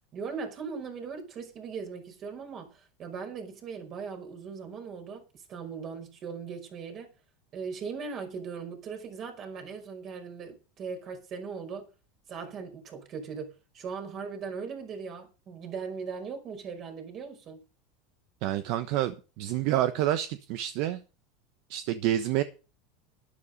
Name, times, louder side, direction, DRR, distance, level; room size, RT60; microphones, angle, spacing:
voice 1, 0.1-5.2 5.5-7.1 7.5-11.9 12.3-17.6, right 5 dB, 40° right, 5.4 m, -39 dB
voice 2, 18.4-21.0 21.7-22.4, right 13 dB, 60° right, 1.1 m, -28 dB
12.0 x 11.5 x 5.4 m
supercardioid pair, 125°, 0 cm